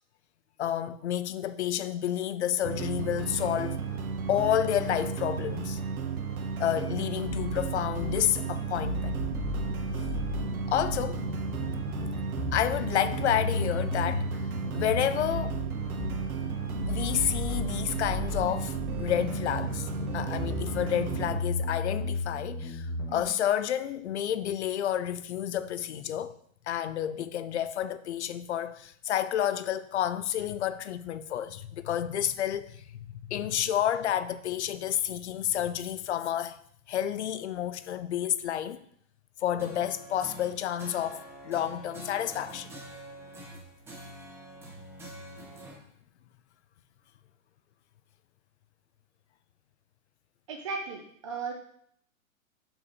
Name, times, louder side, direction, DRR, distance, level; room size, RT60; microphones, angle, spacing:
voice 1, 0.6-3.8 4.3-5.8 6.6-9.2 10.7-11.2 12.5-14.4 14.7-15.6 16.9-26.4 26.7-36.6 36.9-38.8 39.4-42.7, left 10 dB, 55° left, 0.6 m, -30 dB
Eternal Madness, 2.6-21.4, right 6 dB, 85° right, 1.3 m, -34 dB
sound 1, 7.2-23.2, left 3 dB, 30° left, 1.3 m, -35 dB
sound 2, 39.6-45.7, right 1 dB, 5° right, 0.8 m, -46 dB
voice 2, 50.5-51.5, right 4 dB, 25° right, 0.5 m, -36 dB
6.8 x 5.8 x 4.1 m
hypercardioid pair, 155°, 42 cm